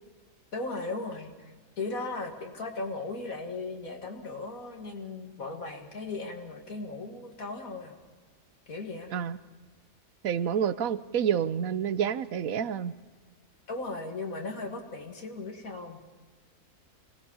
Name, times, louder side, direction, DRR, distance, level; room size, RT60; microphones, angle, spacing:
voice 1, 0.5-8.0 8.7-9.1 13.7-16.0, left 3 dB, 75° left, 3 dB, 2.7 m, -37 dB
voice 2, 10.2-12.9, right 8 dB, 80° right, 14 dB, 1.2 m, -28 dB
24.5 x 18.0 x 7.2 m, 1.4 s
omnidirectional pair, 1.5 m